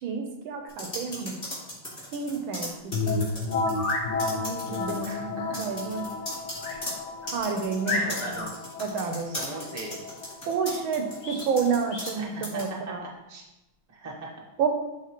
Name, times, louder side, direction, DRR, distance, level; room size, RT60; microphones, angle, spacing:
voice 1, 0.0-1.4 2.1-2.7 3.0-3.3 4.3-6.1 7.3-8.5 8.8-9.4 10.5-13.0 14.6-14.7, right 5 dB, 75° right, 5 dB, 1.3 m, -30 dB
sound 1, 0.7-3.9 4.2-5.1 5.5-12.2 12.4-12.7, left 1 dB, 25° left, 1.9 m, -37 dB
sound 2, 2.9-12.5, left 3 dB, 75° left, 1.1 m, -33 dB
sound 3, 3.6-4.1 6.6-6.8 7.3-7.4 7.8-8.5 11.2-11.5 11.9-12.2, left 2 dB, 55° left, 1.7 m, -31 dB
voice 2, 5.0-5.6 7.9-8.5 9.2-10.1 12.1-13.4 13.9-14.4, right 2 dB, 40° right, -2 dB, 0.5 m, -40 dB
9.8 x 3.5 x 2.9 m, 0.98 s
omnidirectional pair, 2.4 m